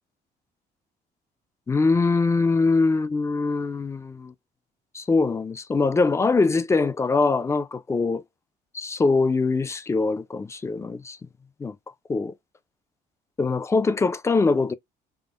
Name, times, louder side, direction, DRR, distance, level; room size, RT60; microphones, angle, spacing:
voice 1, 1.7-4.3 4.9-8.2 8.7-11.2 11.6-11.8 12.1-12.3 13.4-14.7, left 3 dB, 15° left, 0.3 m, -23 dB
3.5 x 2.0 x 2.4 m
cardioid pair, 110°, 17 cm